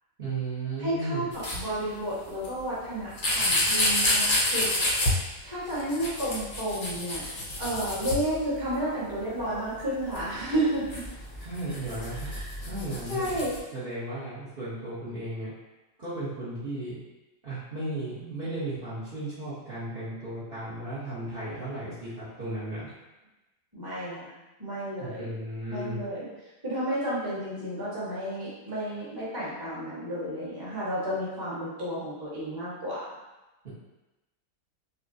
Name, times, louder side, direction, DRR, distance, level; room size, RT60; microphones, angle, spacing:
voice 1, 0.2-1.2 11.4-12.3 12.6-13.5 13.7-15.5 16.0-17.0 17.4-22.9 25.0-26.0, right 2 dB, 45° right, -11 dB, 1.1 m, -35 dB
voice 2, 0.8-4.7 5.4-7.3 7.6-10.8 12.1-12.5 13.1-13.5 23.7-24.3 24.6-25.3 25.7-26.3 26.6-33.0, right 1 dB, 15° right, -9 dB, 1.1 m, -31 dB
sound 1, 1.3-1.6 2.4-2.5 3.2-5.1 5.7-8.7 9.1-9.2 9.4-9.5 10.1-13.6, left 1 dB, 45° left, 0.8 m, -28 dB
5.4 x 2.1 x 2.7 m, 1.0 s
omnidirectional pair, 1.5 m